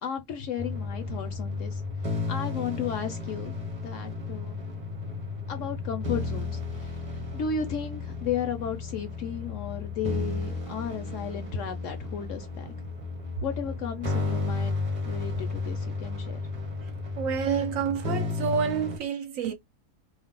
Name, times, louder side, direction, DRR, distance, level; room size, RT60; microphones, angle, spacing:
voice 1, 0.0-3.5 3.8-4.6 5.5-12.7 13.4-14.8 15.0-16.4, left 7 dB, 70° left, 0.8 m, -34 dB
sound 1, 0.6-19.0, left 3 dB, 30° right, 0.7 m, -33 dB
voice 2, 17.2-19.5, right 7 dB, 65° right, 1.0 m, -28 dB
2.6 x 2.0 x 3.5 m
omnidirectional pair, 1.6 m